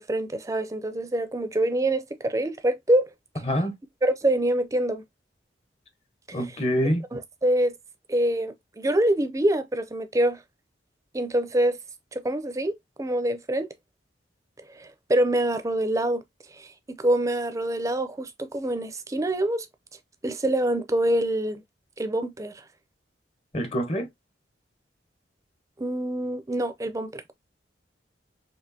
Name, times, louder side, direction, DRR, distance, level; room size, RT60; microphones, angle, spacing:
voice 1, 0.0-3.1 4.0-5.0 6.3-6.4 7.1-7.7 8.1-10.4 11.1-11.8 12.1-12.7 13.0-13.7 14.7-16.2 16.5-19.7 20.2-21.6 22.0-22.6 25.8-27.3, right 1 dB, 15° right, 0.4 m, -25 dB
voice 2, 6.3-7.0 23.5-24.1, equal, 35° left, 0.8 m, -25 dB
4.3 x 2.8 x 2.7 m
head